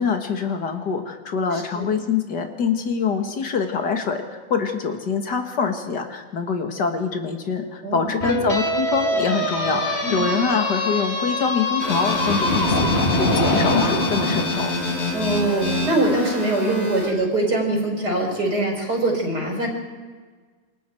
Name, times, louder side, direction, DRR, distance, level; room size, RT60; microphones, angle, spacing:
voice 1, 0.0-4.2 4.5-14.7, left 5 dB, 85° left, 5 dB, 2.4 m, -25 dB
voice 2, 1.5-1.9 7.8-8.4 10.0-10.3 15.1-19.7, right 1 dB, 75° right, 0 dB, 5.6 m, -23 dB
sound 1, 8.2-14.5, left 1 dB, 40° left, 2.6 m, -23 dB
sound 2, 11.8-17.1, left 2 dB, 65° left, 3.7 m, -27 dB
27.5 x 22.5 x 4.6 m, 1.4 s
omnidirectional pair, 1.8 m